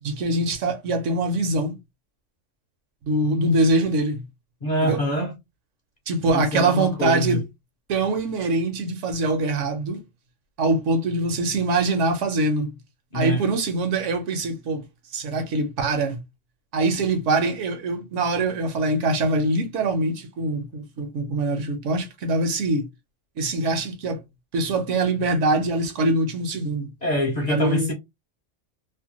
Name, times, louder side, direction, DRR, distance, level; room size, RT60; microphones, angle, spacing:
voice 1, 0.0-1.8 3.0-4.2 4.8-5.0 6.1-7.4 7.9-10.0 10.6-12.8 13.1-14.9 15.1-16.2 16.7-22.9 23.4-24.2 24.5-26.9 27.5-27.9, right 2 dB, 75° right, 1.0 m, -23 dB
voice 2, 4.6-5.3 6.3-7.4 13.1-13.4 27.0-27.9, equal, 45° left, 0.6 m, -25 dB
2.7 x 2.2 x 2.8 m
omnidirectional pair, 1.3 m